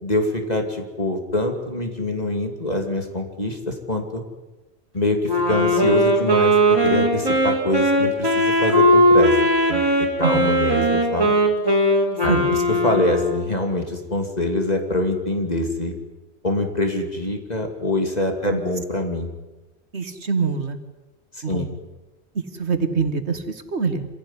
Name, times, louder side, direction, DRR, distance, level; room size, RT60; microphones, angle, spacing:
voice 1, 0.0-4.2 4.9-6.6 6.8-9.4 9.7-9.8 10.2-11.3 12.2-12.4 12.8-15.9 16.4-19.3 21.3-21.7, left 1 dB, 40° left, 3 dB, 2.8 m, -24 dB
Wind instrument woodwind instrument, 5.3-13.5, equal, 20° right, 4.2 m, -19 dB
voice 2, 10.2-10.6 12.3-12.6 18.4-18.6 18.9-19.0 19.9-20.8 21.4-21.7 22.3-24.1, right 5 dB, 85° right, 9 dB, 2.2 m, -25 dB
26.0 x 17.0 x 9.8 m, 1.1 s
omnidirectional pair, 1.1 m